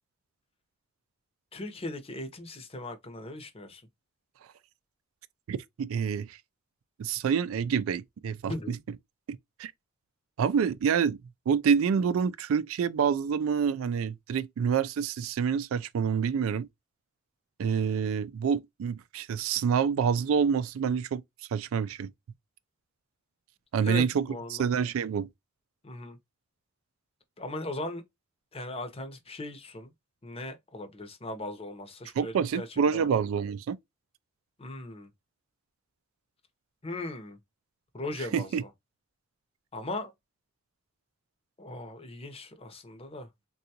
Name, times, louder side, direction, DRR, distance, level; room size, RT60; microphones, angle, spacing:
voice 1, 1.5-3.8 8.5-8.8 23.8-24.7 25.8-26.2 27.4-28.0 28.5-29.9 30.2-32.7 32.9-33.1 34.6-35.1 36.8-37.4 37.9-38.7 39.7-40.1 41.6-43.3, left 2 dB, 30° left, 0.7 m, -38 dB
voice 2, 5.5-6.4 7.0-8.8 9.3-9.7 10.4-11.2 11.5-16.7 17.6-21.2 21.5-22.1 23.7-25.3 32.2-33.8 38.3-38.6, right 6 dB, 75° right, 0.3 m, -27 dB
3.7 x 2.3 x 2.7 m
head